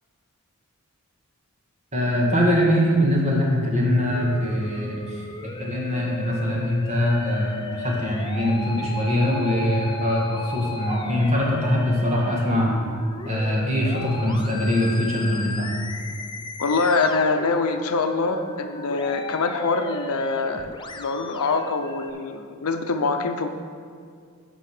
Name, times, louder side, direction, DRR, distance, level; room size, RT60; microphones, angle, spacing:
voice 1, 1.9-5.2 5.6-12.7 13.3-15.7, equal, 30° right, -3 dB, 1.9 m, -22 dB
Musical instrument, 4.1-22.1, left 3 dB, 20° left, 0.5 m, -36 dB
voice 2, 16.6-23.5, left 3 dB, 80° left, 6 dB, 0.7 m, -24 dB
12.5 x 5.2 x 4.9 m, 2.2 s
head